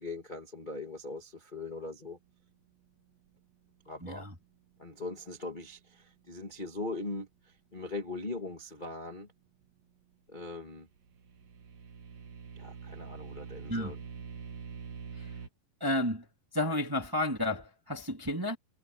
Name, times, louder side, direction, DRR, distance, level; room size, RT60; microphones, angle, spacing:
voice 1, 0.0-2.2 3.8-4.3 4.8-7.3 7.7-9.3 10.3-10.9 12.5-14.0, left 2 dB, 25° left, 1.0 m, -40 dB
voice 2, 4.0-4.3 13.7-13.9 15.2-15.3 15.8-16.2 16.5-18.6, left 1 dB, 10° right, 1.4 m, -31 dB
sound 1, 10.9-15.5, right 5 dB, 55° right, 3.3 m, -45 dB
omnidirectional pair, 5.4 m